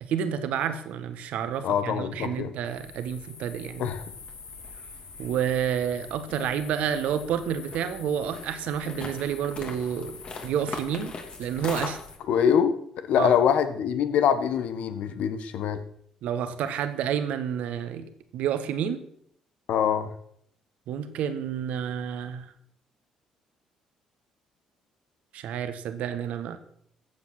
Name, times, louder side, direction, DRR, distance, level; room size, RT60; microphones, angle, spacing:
voice 1, 0.0-3.9 5.2-10.1 10.4-11.1 11.4-12.0 13.2-13.4 16.2-19.0 20.9-22.5 25.3-26.6, right 8 dB, 65° right, 10 dB, 1.4 m, -29 dB
voice 2, 1.6-2.5 3.8-4.0 12.3-12.7 13.1-15.8 19.7-20.1, left 8 dB, 65° left, 10 dB, 1.4 m, -24 dB
sound 1, 2.6-12.2, left 4 dB, 45° left, 3.0 m, -41 dB
14.5 x 8.0 x 6.0 m, 0.66 s
hypercardioid pair, 45°, 2 cm